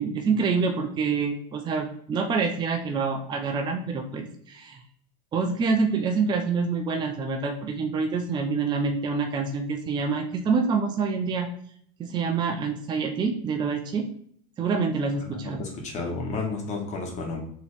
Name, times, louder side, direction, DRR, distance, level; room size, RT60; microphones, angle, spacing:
voice 1, 0.0-4.8 5.3-11.5 12.0-14.1 14.6-15.7, right 4 dB, 25° right, 4 dB, 0.5 m, -26 dB
voice 2, 15.2-17.4, left 3 dB, 40° left, 0 dB, 1.3 m, -32 dB
4.5 x 3.0 x 3.4 m, 0.62 s
supercardioid pair, 130°, 18 cm